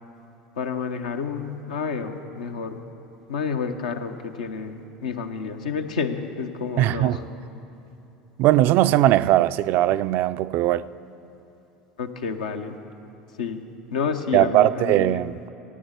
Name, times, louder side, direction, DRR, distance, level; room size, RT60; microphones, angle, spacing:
voice 1, 0.6-2.8 3.3-7.2 12.0-12.8 13.4-13.6 13.9-15.2, left 5 dB, 80° left, 0.8 m, -29 dB
voice 2, 6.8-7.2 8.4-10.9 14.3-15.5, right 14 dB, 55° right, 0.3 m, -19 dB
14.5 x 8.9 x 8.1 m
hypercardioid pair, 80°, 4 cm